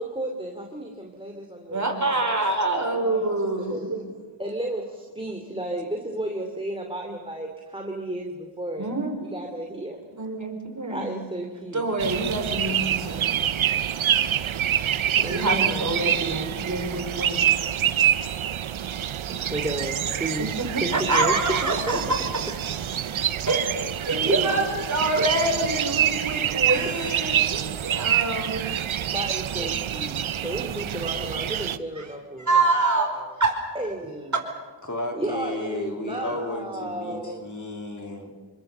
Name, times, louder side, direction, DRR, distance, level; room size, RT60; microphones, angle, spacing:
voice 1, 0.0-2.0 2.2-3.2 3.6-3.9 4.4-10.0 10.9-11.9 13.4-13.6 15.2-16.5 17.3-17.8 19.3-20.5 20.8-22.0 22.5-22.6 24.2-24.6 26.4-26.5 27.2-27.3 28.1-28.2 29.1-33.4 33.7-34.3 35.1-37.4, right 1 dB, 10° right, 2 dB, 2.8 m, -33 dB
voice 2, 1.7-3.8 8.8-9.1 10.2-11.1 11.7-13.3 15.2-17.4 20.4-22.2 23.5-28.8 32.0-32.1 32.4-33.1 33.4-33.6 34.3-34.4, right 2 dB, 40° right, 3 dB, 5.2 m, -26 dB
sound 1, 12.0-31.8, right 10 dB, 80° right, 0.8 m, -26 dB
voice 3, 34.8-38.3, left 1 dB, 40° left, 3 dB, 3.3 m, -33 dB
27.0 x 23.5 x 6.9 m, 1.5 s
wide cardioid pair, 75°, 47 cm